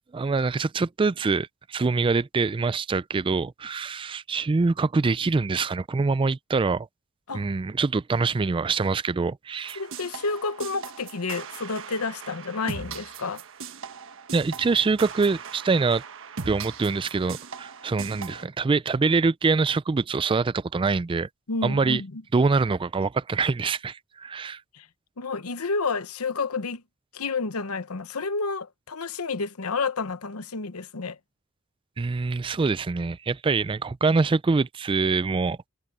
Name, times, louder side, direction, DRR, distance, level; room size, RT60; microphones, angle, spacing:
voice 1, 0.1-6.9 7.3-9.8 14.3-16.0 16.5-21.3 21.6-22.0 22.3-24.6 32.0-35.6, right 4 dB, 25° right, 0.3 m, -24 dB
sound 1, 9.6-18.4, right 5 dB, 65° right, 1.3 m, -40 dB
voice 2, 9.7-13.4 21.5-22.2 24.7-24.9 25.2-26.8 27.1-31.2, left 4 dB, 80° left, 1.0 m, -30 dB
head